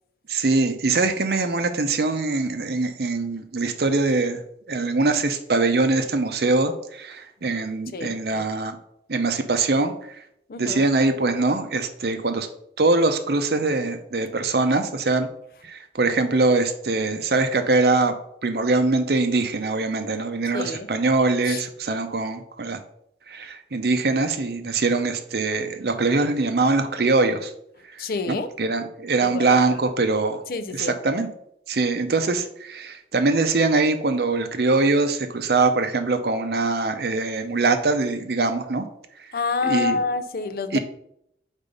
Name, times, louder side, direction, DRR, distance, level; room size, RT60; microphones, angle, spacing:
voice 1, 0.3-4.4 4.7-8.8 9.1-10.2 10.6-12.5 12.8-15.3 15.6-18.1 18.4-22.8 23.3-27.5 27.9-30.4 30.7-31.3 31.7-38.9 39.6-40.0 40.7-40.8, right 3 dB, 65° right, 8 dB, 0.7 m, -23 dB
voice 2, 7.9-8.5 10.5-10.9 20.5-20.9 21.5-21.6 28.0-28.5 29.2-29.8 30.5-30.9 39.3-40.8, left 4 dB, 55° left, 10 dB, 0.5 m, -28 dB
5.4 x 4.1 x 5.3 m, 0.73 s
head